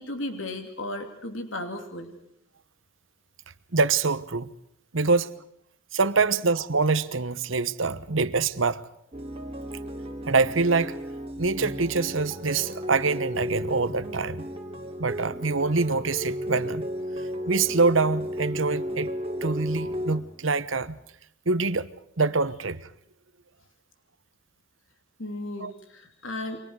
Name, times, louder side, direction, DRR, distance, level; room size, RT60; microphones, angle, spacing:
voice 1, 0.0-2.1 25.2-26.6, left 1 dB, 80° left, 3.0 m, -35 dB
voice 2, 3.7-4.5 4.9-5.3 5.9-8.8 10.3-11.0 11.4-14.5 15.0-16.9 17.5-21.0 21.5-21.9 22.2-22.9 25.6-25.7, right 4 dB, 80° right, 1.2 m, -25 dB
sound 1, 9.1-20.2, equal, 30° right, 3.1 m, -34 dB
30.0 x 24.5 x 4.8 m
head